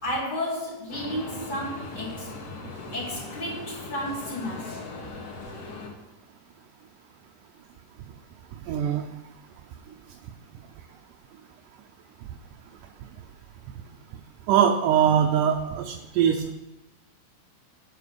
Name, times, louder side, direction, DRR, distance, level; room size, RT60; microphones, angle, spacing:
voice 1, 0.0-2.3 2.9-4.8, left 1 dB, 15° left, -4 dB, 2.3 m, -32 dB
sound 1, 0.9-5.9, left 3 dB, 70° left, 3.3 m, -39 dB
voice 2, 8.7-9.0 14.5-16.5, right 9 dB, 80° right, 3 dB, 2.2 m, -22 dB
9.6 x 6.0 x 6.8 m, 0.98 s
omnidirectional pair, 3.9 m